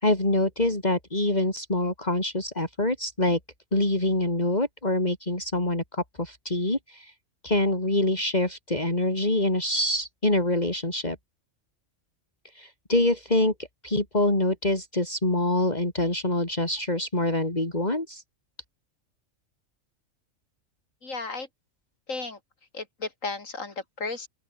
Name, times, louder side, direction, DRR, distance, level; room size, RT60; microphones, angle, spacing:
voice 1, 0.0-3.4 3.7-7.1 7.4-11.2 12.5-13.5 13.8-18.2, left 1 dB, 30° left, 4.6 m, -25 dB
voice 2, 21.0-21.5 22.1-22.4 22.7-24.3, left 3 dB, 80° left, 3.7 m, -34 dB
open air
omnidirectional pair, 1.3 m